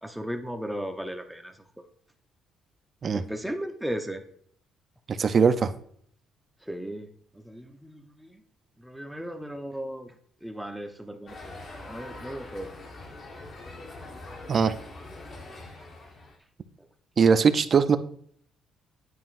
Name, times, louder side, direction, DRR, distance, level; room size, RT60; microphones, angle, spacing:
voice 1, 0.0-1.9 3.1-4.2 6.6-7.1 7.3-8.4 8.8-10.1 10.4-11.5 11.9-12.7, equal, 5° right, 6 dB, 0.8 m, -36 dB
voice 2, 5.1-5.7 14.5-14.7 17.2-18.0, right 6 dB, 45° right, 12 dB, 0.5 m, -21 dB
sound 1, 11.3-16.4, left 2 dB, 45° left, 1.4 m, -43 dB
9.4 x 5.4 x 2.5 m, 0.62 s
cardioid pair, 95°, 0 cm